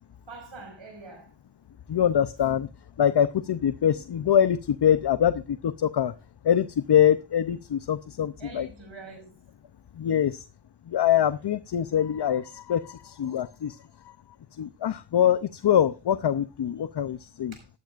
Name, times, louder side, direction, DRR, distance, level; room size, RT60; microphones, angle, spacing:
voice 1, 0.3-1.3 8.4-9.3 17.5-17.7, right 3 dB, 85° right, 5.5 m, -44 dB
voice 2, 1.9-2.7 3.0-6.1 6.4-8.7 10.0-10.4 10.9-13.8 14.6-17.5, left 9 dB, 60° left, 0.6 m, -24 dB
15.0 x 12.0 x 2.5 m
cardioid pair, 50°, 46 cm